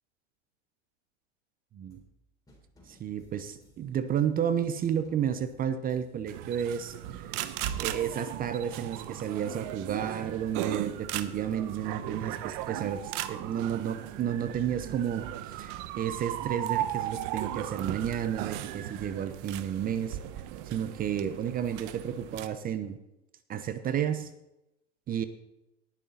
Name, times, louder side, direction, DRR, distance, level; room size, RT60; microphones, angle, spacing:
sound 1, 1.9-2.2 2.5-4.4 4.7-6.8 7.0-9.0 9.3-11.3 11.6-13.6 13.9-15.9 16.2-18.1 18.5-20.1, equal, 10° left, 3.8 m, -61 dB
voice 1, 2.9-7.3 7.8-13.0 13.3-20.2 20.7-23.0 23.5-24.3 25.1-25.3, right 9 dB, 25° right, 12 dB, 0.8 m, -32 dB
sound 2, 6.3-22.5, right 12 dB, 50° right, 0.9 m, -37 dB
19.0 x 6.8 x 4.0 m, 0.91 s
hypercardioid pair, 120°, 36 cm